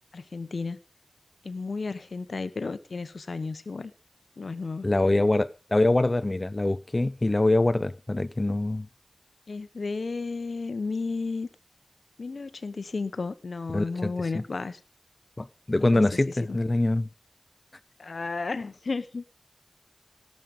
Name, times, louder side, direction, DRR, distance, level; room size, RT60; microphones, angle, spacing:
voice 1, 0.1-0.8 1.4-3.9 4.4-4.9 9.5-11.5 12.2-14.8 15.8-16.0 16.4-16.6 18.0-19.2, left 4 dB, 85° left, 1.0 m, -33 dB
voice 2, 4.8-8.9 13.7-14.4 15.4-17.1, left 2 dB, 35° left, 0.5 m, -24 dB
17.5 x 7.6 x 5.2 m
wide cardioid pair, 50°, 0 cm